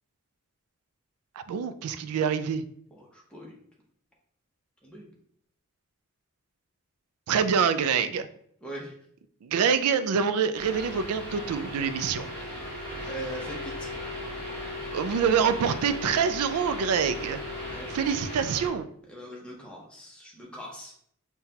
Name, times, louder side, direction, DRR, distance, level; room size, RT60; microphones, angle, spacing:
voice 1, 1.5-2.6 7.3-8.3 9.4-12.3 14.9-17.4 17.9-18.9, right 6 dB, 90° right, 12 dB, 0.3 m, -26 dB
voice 2, 2.9-3.5 4.8-5.1 8.6-8.9 13.0-13.9 17.7-17.9 19.1-20.9, right 1 dB, 5° left, -3 dB, 0.7 m, -41 dB
sound 1, 10.5-18.7, left 1 dB, 25° left, 1.5 m, -37 dB
5.6 x 2.3 x 2.7 m, 0.66 s
head